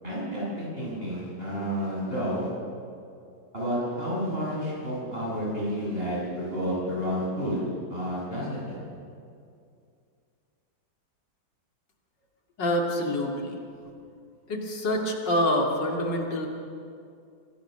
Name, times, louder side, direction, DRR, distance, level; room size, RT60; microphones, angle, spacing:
voice 1, 0.0-2.5 3.5-7.6 7.9-8.8, equal, 30° right, -5 dB, 8.2 m, -30 dB
voice 2, 12.6-13.6 14.5-16.5, left 1 dB, 75° left, 1 dB, 3.0 m, -26 dB
25.0 x 18.0 x 6.7 m, 2.4 s
omnidirectional pair, 1.9 m